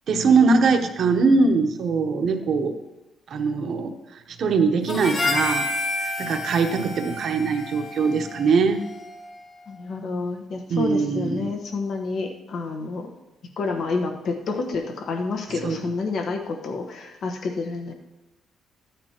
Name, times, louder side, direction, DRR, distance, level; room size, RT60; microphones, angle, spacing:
voice 1, 0.1-2.7 3.3-3.9 4.4-5.7 6.0-8.8 10.7-11.5 15.6-15.8, right 4 dB, 60° right, 6 dB, 1.0 m, -21 dB
Harmonica, 4.9-9.4, left 2 dB, 40° left, 2.5 m, -30 dB
voice 2, 9.7-13.2 13.6-17.9, left 3 dB, 65° left, 3 dB, 1.2 m, -29 dB
13.0 x 8.8 x 3.0 m, 1.0 s
cardioid pair, 90°, 0 cm